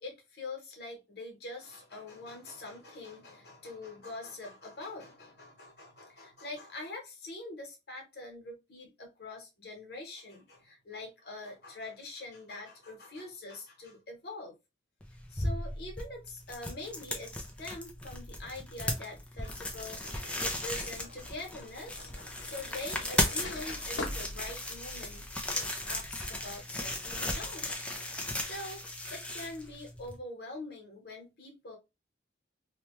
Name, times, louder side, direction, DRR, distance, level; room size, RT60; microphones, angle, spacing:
voice 1, 0.0-14.5 15.3-25.3 25.5-31.8, left 2 dB, 55° left, 1.1 m, -44 dB
sound 1, 15.0-30.2, left 1 dB, 5° left, 0.4 m, -36 dB
sound 2, 19.4-26.6, left 1 dB, 80° left, 0.7 m, -46 dB
2.8 x 2.3 x 3.0 m
head